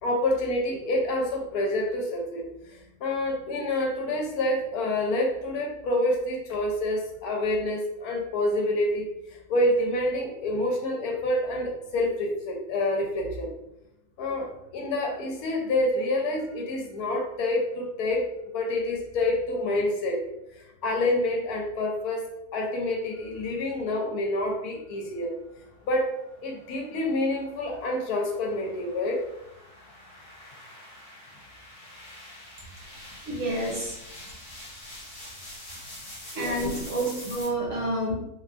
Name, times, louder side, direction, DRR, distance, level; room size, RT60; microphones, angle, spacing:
voice 1, 0.0-13.5 14.2-18.3 18.5-20.2 20.6-25.3 25.9-26.1 26.4-29.2 36.4-36.7, left 1 dB, 75° left, 1 dB, 1.0 m, -27 dB
sound 1, 25.4-37.5, left 1 dB, 50° left, 0.6 m, -46 dB
voice 2, 33.2-34.0 36.3-38.1, right 1 dB, 60° right, -4 dB, 1.1 m, -29 dB
2.7 x 2.2 x 2.4 m, 0.87 s
omnidirectional pair, 1.7 m